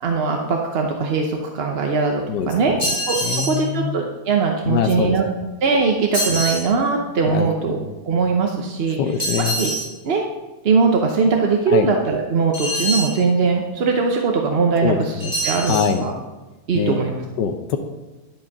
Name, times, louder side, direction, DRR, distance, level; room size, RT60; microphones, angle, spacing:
voice 1, 0.0-2.8 3.1-3.2 3.4-5.2 5.6-7.8 8.0-9.0 9.6-9.7 10.0-10.2 10.6-15.1 15.4-16.1 16.7-17.2, right 4 dB, 50° right, 2 dB, 0.8 m, -20 dB
sound 1, 2.8-3.6 6.1-6.7 9.2-9.9 12.5-13.2 15.2-15.9, right 1 dB, 10° right, 3.7 m, -24 dB
voice 2, 3.2-4.0 4.6-5.5 6.3-6.4 7.3-7.9 9.0-9.6 11.7-11.9 14.8-15.3 15.7-16.0 16.7-17.0 17.4-17.8, left 7 dB, 80° left, 5 dB, 1.3 m, -23 dB
11.0 x 5.3 x 5.8 m, 1.2 s
omnidirectional pair, 1.8 m